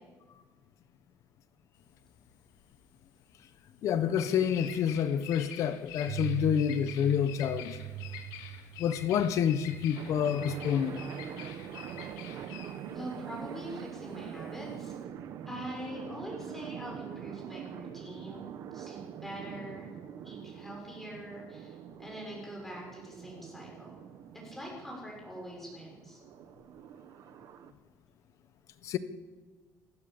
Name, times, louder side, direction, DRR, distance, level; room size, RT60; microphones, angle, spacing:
Bird vocalization bird call bird song, 1.8-15.0, left 10 dB, 85° left, 2.8 m, -47 dB
voice 1, 3.8-7.8 8.8-11.0 28.8-29.0, left 8 dB, 50° left, 1.2 m, -28 dB
sound 1, 6.1-11.1 11.3-12.5, right 12 dB, 85° right, 1.1 m, -42 dB
sound 2, 10.0-27.7, right 9 dB, 50° right, 1.2 m, -44 dB
voice 2, 12.9-14.9 15.4-19.9 20.2-24.0 24.4-26.2, equal, 5° left, 6.5 m, -43 dB
28.0 x 15.0 x 7.3 m
cardioid pair, 175°, 7 cm